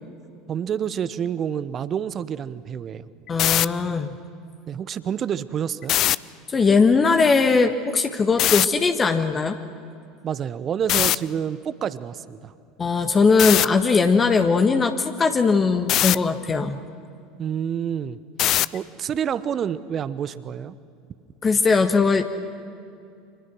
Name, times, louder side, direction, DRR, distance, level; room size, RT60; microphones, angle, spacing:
voice 1, 0.5-3.1 4.7-5.9 10.2-12.5 17.4-20.7, right 8 dB, 35° right, 15 dB, 1.1 m, -28 dB
sound 1, 3.3-3.7 5.8-6.2 8.4-8.7 10.9-11.2 13.4-13.7 15.9-16.2 18.4-18.8, left 13 dB, 45° left, 0.5 m, -20 dB
voice 2, 3.3-4.1 6.5-9.6 12.8-16.8 21.4-22.2, left 4 dB, 25° left, 7 dB, 1.5 m, -19 dB
30.0 x 26.0 x 6.3 m, 2.5 s
figure-of-eight pair, 75°, 0 cm